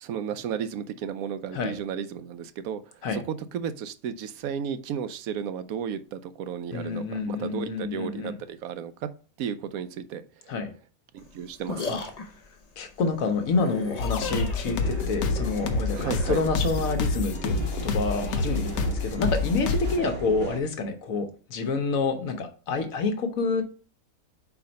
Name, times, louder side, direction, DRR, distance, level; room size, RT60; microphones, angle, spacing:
voice 1, 0.0-2.8 3.1-9.1 9.4-10.2 11.1-12.0 15.9-16.4, right 8 dB, 80° right, 12 dB, 1.0 m, -33 dB
voice 2, 6.7-8.4 10.5-10.7 11.9-12.0 12.8-23.6, left 4 dB, 70° left, 7 dB, 1.3 m, -28 dB
sound 1, 11.2-17.2, left 4 dB, 40° left, 0.6 m, -38 dB
sound 2, 14.0-20.0, left 3 dB, 90° left, 1.3 m, -28 dB
sound 3, 14.8-20.6, right 3 dB, 45° right, 0.8 m, -38 dB
4.7 x 4.4 x 5.1 m, 0.39 s
omnidirectional pair, 1.5 m